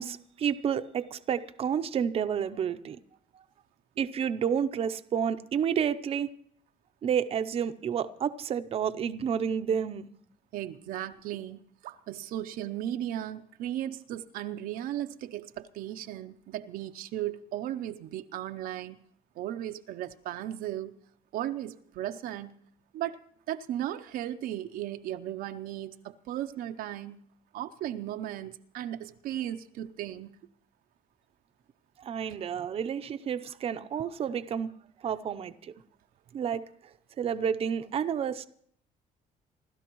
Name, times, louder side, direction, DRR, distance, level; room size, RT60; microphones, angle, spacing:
voice 1, 0.0-3.0 4.0-6.3 7.0-10.1 32.0-34.7 35.0-35.7 36.3-36.6 37.2-38.5, right 8 dB, 40° right, 0.7 m, -30 dB
voice 2, 10.5-19.0 19.4-20.9 21.3-22.5 22.9-23.2 23.5-27.2 27.5-30.3, right 12 dB, 75° right, 0.7 m, -36 dB
27.0 x 12.5 x 3.1 m
cardioid pair, 140°, 15 cm